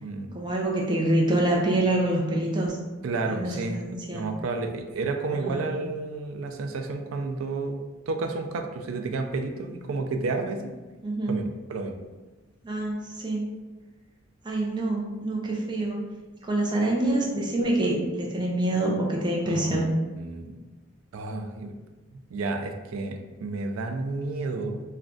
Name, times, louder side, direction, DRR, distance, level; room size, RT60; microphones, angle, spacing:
voice 1, 0.3-2.8 3.3-4.2 5.3-5.6 11.0-11.4 12.6-13.4 14.4-16.0 16.4-19.9, right 1 dB, 20° right, -2 dB, 0.5 m, -26 dB
voice 2, 3.0-3.8 4.1-7.8 8.1-10.7 11.3-11.4 11.7-12.0 19.5-20.6 21.1-21.7 22.3-24.8, right 3 dB, 85° right, 5 dB, 0.4 m, -31 dB
2.4 x 2.2 x 3.6 m, 1.2 s
head